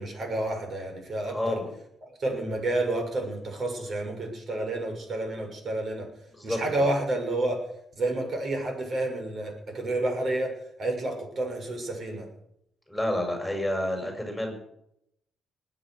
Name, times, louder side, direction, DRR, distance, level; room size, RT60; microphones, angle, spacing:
voice 1, 0.0-1.6 2.1-6.1 6.4-7.6 8.0-12.3, right 2 dB, 50° right, 3 dB, 6.6 m, -30 dB
voice 2, 1.3-1.7 6.3-6.6 12.9-14.5, left 1 dB, ahead, 2 dB, 6.3 m, -29 dB
20.5 x 8.9 x 6.6 m, 0.74 s
cardioid pair, 90°, 0 cm